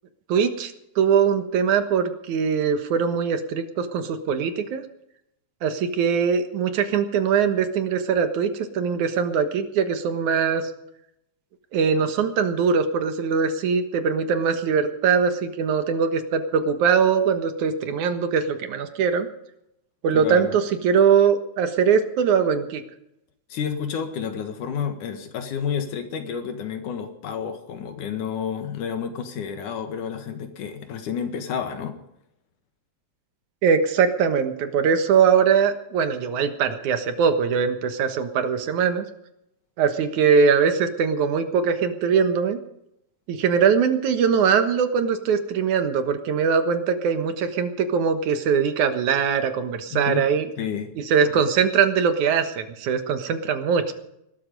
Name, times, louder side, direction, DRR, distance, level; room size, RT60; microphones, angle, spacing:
voice 1, 0.3-4.8 5.6-10.7 11.7-19.3 20.0-22.8 33.6-39.0 39.8-42.6 43.3-50.5 51.1-53.9, right 6 dB, 75° right, 8 dB, 2.8 m, -21 dB
voice 2, 20.1-20.5 23.5-32.0 49.9-50.3 50.6-51.0 51.2-51.4, left 7 dB, 85° left, 7 dB, 3.1 m, -30 dB
20.0 x 13.0 x 5.3 m, 0.80 s
omnidirectional pair, 3.5 m